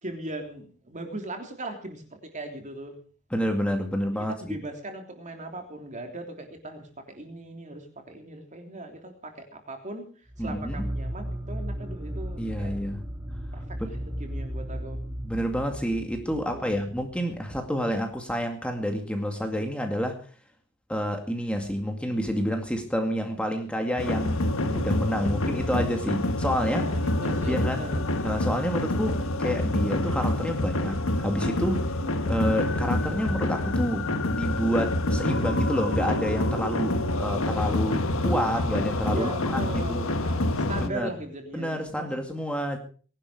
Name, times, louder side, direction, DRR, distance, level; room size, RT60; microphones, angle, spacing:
voice 1, 0.0-3.0 4.1-10.0 10.4-12.7 13.5-15.0 16.4-16.8 26.6-28.0 39.1-42.1, right 1 dB, 35° right, 4 dB, 3.3 m, -39 dB
voice 2, 3.3-4.4 10.4-10.9 12.4-13.0 15.2-20.2 20.9-26.8 27.3-27.9 28.2-31.9 32.3-36.9 37.2-40.1 40.8-41.1 41.5-42.8, equal, 5° left, 4 dB, 2.2 m, -29 dB
sound 1, 10.3-17.6, equal, 15° right, 1.7 m, -35 dB
sound 2, 24.0-40.9, left 1 dB, 75° left, 1.5 m, -27 dB
20.0 x 11.5 x 5.0 m, 0.42 s
head